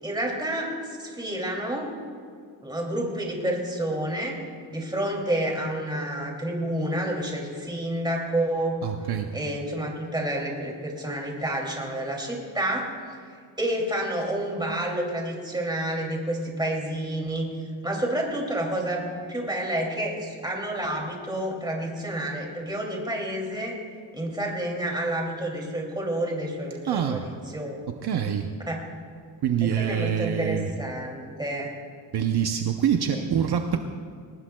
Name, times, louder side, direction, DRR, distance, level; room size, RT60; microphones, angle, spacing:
voice 1, 0.0-1.9 2.6-4.4 4.7-8.8 9.3-12.9 13.6-17.5 17.8-23.8 24.1-27.8 28.7-28.8 29.6-31.8 33.1-33.2, right 1 dB, 10° right, 0 dB, 2.6 m, -29 dB
voice 2, 8.8-9.3 26.9-27.3 28.0-28.5 29.4-30.7 32.1-33.8, right 8 dB, 55° right, 5 dB, 0.8 m, -25 dB
21.5 x 19.0 x 2.3 m, 2.2 s
wide cardioid pair, 155°, 45 cm